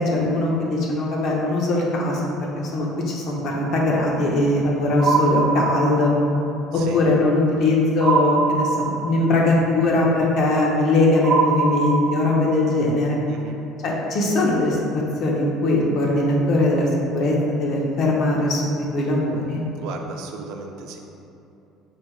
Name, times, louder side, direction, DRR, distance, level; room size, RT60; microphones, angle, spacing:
voice 1, 0.0-2.2 2.5-6.1 6.7-13.2 13.8-16.9 17.1-19.6, left 2 dB, 60° left, -2 dB, 0.7 m, -20 dB
sound 1, 5.0-6.2 8.0-9.2 11.2-12.5, right 4 dB, 40° right, 0.9 m, -22 dB
voice 2, 13.3-13.6 19.8-21.0, right 4 dB, 75° right, 3 dB, 0.4 m, -35 dB
4.3 x 3.2 x 2.3 m, 2.8 s
cardioid pair, 110°, 0 cm